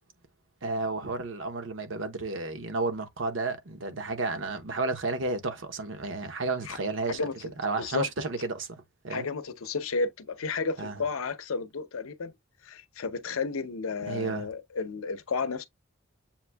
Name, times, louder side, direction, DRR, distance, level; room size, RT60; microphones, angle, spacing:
voice 1, 0.6-9.3 10.8-11.0 14.1-14.5, right 3 dB, 60° right, 0.8 m, -32 dB
voice 2, 9.1-12.3 12.6-15.7, left 4 dB, 80° left, 0.6 m, -32 dB
7.3 x 2.6 x 2.2 m
head